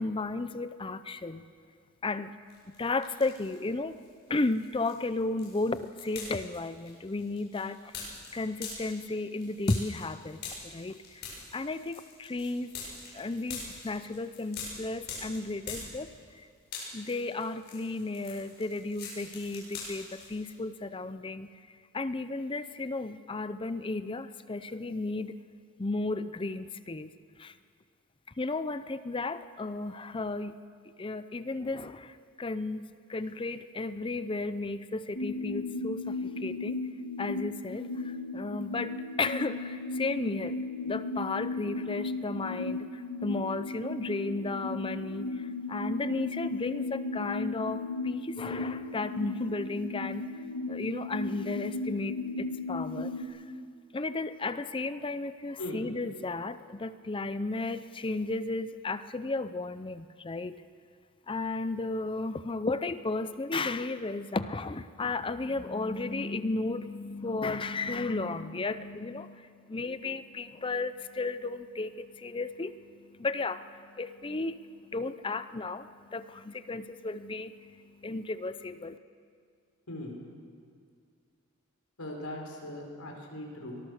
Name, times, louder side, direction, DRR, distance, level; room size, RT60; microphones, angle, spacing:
voice 1, 0.0-1.4 2.0-2.3 2.8-4.0 4.3-12.7 13.1-16.5 16.9-25.4 25.8-27.1 27.4-27.6 28.4-30.6 31.0-36.8 37.2-40.6 40.8-53.4 53.9-60.6 61.3-79.0, left 3 dB, 25° left, 13 dB, 0.5 m, -34 dB
sound 1, 2.5-3.7 4.0-16.4 16.6-20.5, left 4 dB, 45° left, 7.6 m, -44 dB
sound 2, 35.2-53.2, left 3 dB, 65° left, 2.1 m, -36 dB
voice 2, 82.0-83.8, left 1 dB, 85° left, 1 dB, 4.6 m, -39 dB
23.5 x 19.5 x 6.5 m, 2.2 s
head